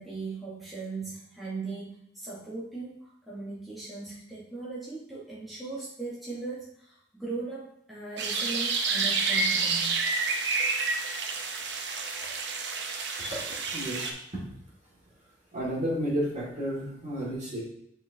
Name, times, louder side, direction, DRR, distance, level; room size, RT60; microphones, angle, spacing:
voice 1, 0.0-9.9, right 3 dB, ahead, -9 dB, 1.1 m, -38 dB
sound 1, 8.2-14.1, right 4 dB, 60° right, 0.7 m, -29 dB
voice 2, 13.7-14.4 15.5-17.6, equal, 35° right, -5 dB, 1.9 m, -32 dB
9.0 x 4.0 x 2.7 m, 0.73 s
head